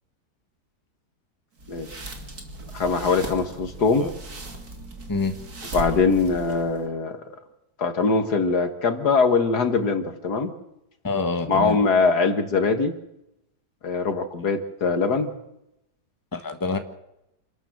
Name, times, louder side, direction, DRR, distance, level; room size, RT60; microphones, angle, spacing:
sound 1, 1.6-6.8, right 2 dB, 60° right, 3.3 m, -38 dB
voice 1, 2.7-4.1 5.7-7.2 7.8-10.5 11.5-13.0 13.8-15.3, left 4 dB, 70° left, 8 dB, 2.2 m, -22 dB
voice 2, 3.8-4.1 5.1-5.4 11.0-11.8 16.3-16.8, left 3 dB, 10° left, 7 dB, 1.6 m, -27 dB
27.5 x 13.0 x 7.8 m, 0.86 s
omnidirectional pair, 1.8 m